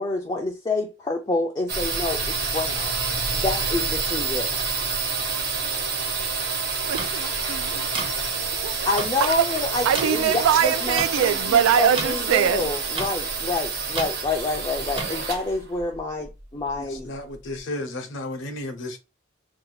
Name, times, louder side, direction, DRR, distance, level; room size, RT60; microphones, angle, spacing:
voice 1, 0.0-2.9 3.3-4.6 8.8-17.1, left 3 dB, 20° left, 0.4 m, -28 dB
sound 1, 1.7-17.3, right 4 dB, 50° right, 0.8 m, -28 dB
voice 2, 6.9-8.1 8.6-12.7, right 9 dB, 90° right, 0.3 m, -23 dB
sound 2, 7.0-7.1 7.9-8.1 9.0-9.1 9.9-10.0 11.0-11.1 11.9-12.1 12.9-13.1 13.9-14.1 14.9-15.1, right 3 dB, 25° right, 0.6 m, -29 dB
voice 3, 16.9-19.0, left 2 dB, 70° left, 0.7 m, -33 dB
2.6 x 2.3 x 3.9 m
head